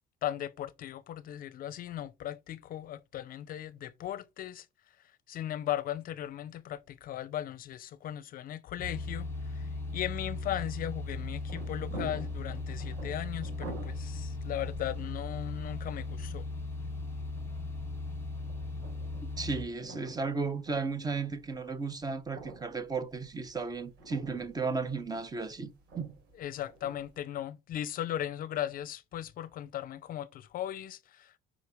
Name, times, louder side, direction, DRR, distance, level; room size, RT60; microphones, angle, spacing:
voice 1, 0.2-4.7 5.3-9.3 9.6-16.4 26.3-31.4, left 12 dB, 55° left, 0.5 m, -37 dB
sound 1, 8.8-19.6, left 3 dB, 15° left, 2.1 m, -37 dB
sound 2, 11.0-27.2, right 3 dB, 75° right, 3.5 m, -50 dB
voice 2, 19.2-25.7 26.0-26.1, right 4 dB, 20° right, 0.9 m, -34 dB
5.1 x 4.0 x 4.7 m
cardioid pair, 110°, 17 cm